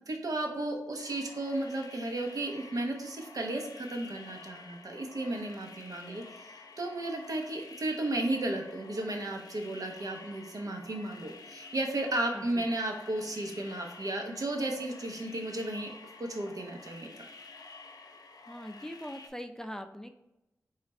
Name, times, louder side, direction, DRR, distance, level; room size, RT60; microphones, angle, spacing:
voice 1, 0.1-6.3 6.8-15.9 16.2-17.1, right 1 dB, 65° right, 2 dB, 0.9 m, -34 dB
sound 1, 1.0-19.3, left 3 dB, 75° left, 0.6 m, -50 dB
voice 2, 12.3-12.7 18.5-20.1, equal, 10° left, 7 dB, 0.4 m, -42 dB
4.4 x 2.4 x 4.2 m, 0.92 s
cardioid pair, 40°, 7 cm